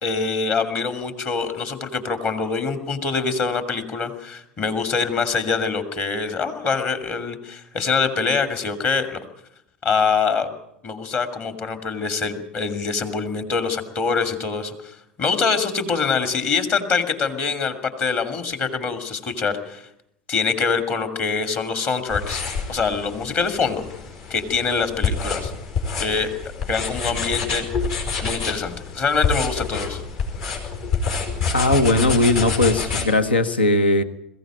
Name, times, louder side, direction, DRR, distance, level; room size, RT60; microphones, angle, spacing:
voice 1, 0.0-9.2 9.8-10.5 10.8-19.9 20.3-22.4 22.7-23.8 24.3-25.5 26.0-26.3 26.7-27.7 28.2-30.0, left 5 dB, 35° left, 8 dB, 2.7 m, -24 dB
sound 1, 22.1-33.0, left 5 dB, 60° left, 5.0 m, -27 dB
voice 2, 31.5-34.0, left 2 dB, 80° left, 12 dB, 1.3 m, -18 dB
22.0 x 15.5 x 9.1 m, 0.80 s
figure-of-eight pair, 80°, 5 cm